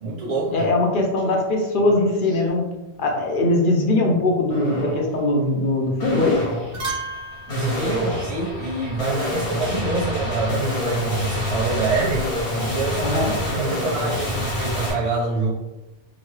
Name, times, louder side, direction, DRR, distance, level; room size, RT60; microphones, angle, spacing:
voice 1, 0.0-0.7 7.5-12.3 12.6-15.5, right 3 dB, 40° right, -7 dB, 0.6 m, -26 dB
voice 2, 0.5-2.7 3.0-6.4 13.0-13.3, left 2 dB, 60° left, 1 dB, 0.7 m, -21 dB
sound 1, 1.2-1.3 1.8-2.5 3.0-3.4 4.5-5.1 6.0-14.9, left 1 dB, 75° left, 1.3 m, -27 dB
sound 2, 6.0-6.3 6.6-9.1 11.6-12.5, right 2 dB, 60° right, 1.2 m, -35 dB
2.9 x 2.2 x 3.1 m, 1.0 s
omnidirectional pair, 1.1 m